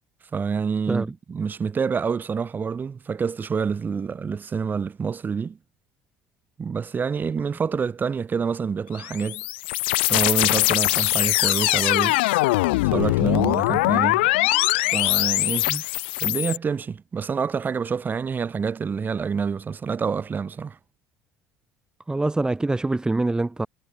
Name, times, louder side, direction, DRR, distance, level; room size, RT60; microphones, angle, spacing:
voice 1, 0.3-5.6 6.6-9.4 10.1-12.2 12.9-14.3 14.9-15.7 16.2-20.8, right 6 dB, 35° right, 6.9 m, -27 dB
sound 1, 8.9-16.6, left 21 dB, 80° left, 1.6 m, -22 dB
voice 2, 22.1-23.7, right 2 dB, 15° right, 1.7 m, -24 dB
hypercardioid pair, 70°, 6 cm